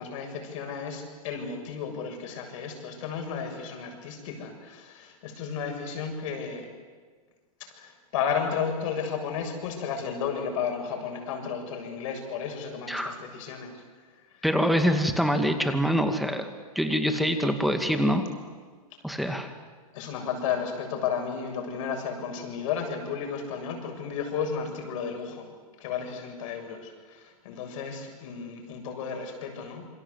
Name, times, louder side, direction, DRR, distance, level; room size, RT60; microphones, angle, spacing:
voice 1, 0.0-6.7 7.7-13.7 19.9-25.5 25.8-29.9, left 6 dB, 60° left, 4 dB, 7.2 m, -33 dB
voice 2, 12.9-13.2 14.4-16.5 16.8-18.3 19.0-19.5, equal, ahead, 6 dB, 2.3 m, -25 dB
27.5 x 24.5 x 8.2 m, 1.5 s
hypercardioid pair, 125°, 19 cm